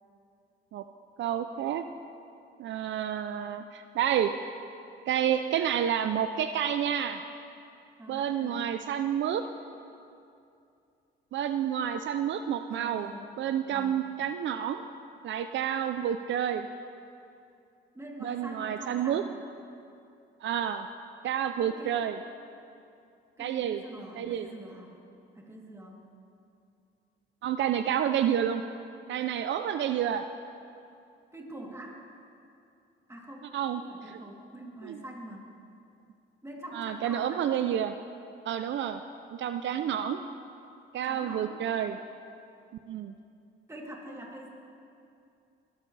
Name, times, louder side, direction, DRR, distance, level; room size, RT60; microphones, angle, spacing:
voice 1, 1.2-1.8 2.6-4.3 5.1-7.2 8.1-9.4 11.3-13.1 13.4-14.8 15.2-16.7 18.2-19.2 20.4-20.9 21.2-22.2 23.4-23.8 24.2-24.5 27.4-28.6 29.1-30.2 33.5-33.8 34.1-34.2 34.8-35.0 36.7-37.9 38.4-39.0 39.3-40.2 40.9-42.0 42.9-43.1, right 9 dB, 70° right, 8 dB, 0.5 m, -29 dB
voice 2, 8.0-8.7 12.7-13.4 13.7-14.0 17.9-19.3 21.6-22.0 23.4-24.9 25.3-26.1 31.3-32.0 33.1-35.5 36.4-37.4 41.0-41.6 43.7-44.5, right 1 dB, 15° right, -2 dB, 3.1 m, -44 dB
22.0 x 14.0 x 3.3 m, 2.5 s
cardioid pair, 90°, 20 cm